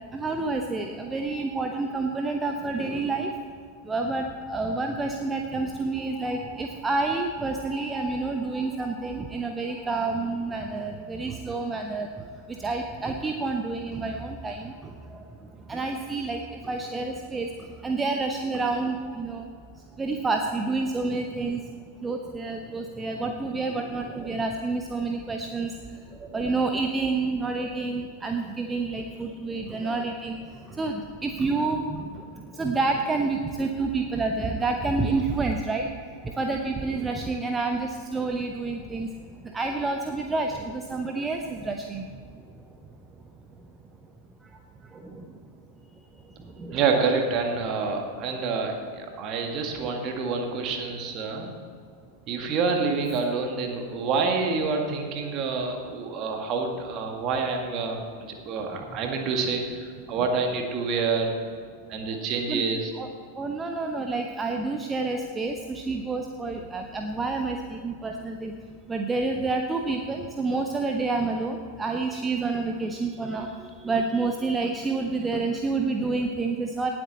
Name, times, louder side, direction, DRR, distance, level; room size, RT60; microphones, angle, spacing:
voice 1, 0.1-3.3 3.9-12.1 12.6-14.7 15.1-15.2 15.7-17.5 17.8-19.4 20.0-21.6 22.0-25.7 26.3-30.4 30.8-32.2 32.5-35.9 36.2-39.1 39.5-42.1 45.0-45.1 46.6-46.8 62.5-62.6 62.9-63.1 63.4-68.5 68.9-73.5 73.8-76.9, right 3 dB, 15° right, 4 dB, 0.8 m, -28 dB
voice 2, 46.7-51.5 52.3-61.3 61.9-62.9, right 4 dB, 35° right, 3 dB, 1.9 m, -27 dB
18.5 x 8.0 x 4.2 m, 2.2 s
figure-of-eight pair, 90°, 0 cm